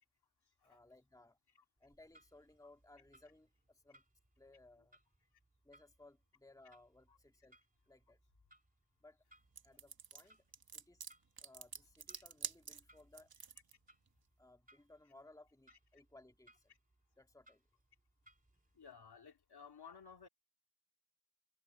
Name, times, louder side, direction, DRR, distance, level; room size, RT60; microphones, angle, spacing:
voice 1, 0.6-1.4 1.8-4.0 4.4-5.3 5.6-7.6 7.9-8.2 9.0-9.2 9.6-10.4 10.7-11.1 11.4-13.4 14.4-16.7 17.2-17.6, left 2 dB, 5° left, 2.1 m, -63 dB
Clock, 1.8-18.9, right 1 dB, 15° right, 3.5 m, -71 dB
sound 1, 9.6-13.7, right 6 dB, 50° right, 1.5 m, -47 dB
voice 2, 18.7-20.3, left 6 dB, 55° left, 2.9 m, -57 dB
cardioid pair, 65°, 47 cm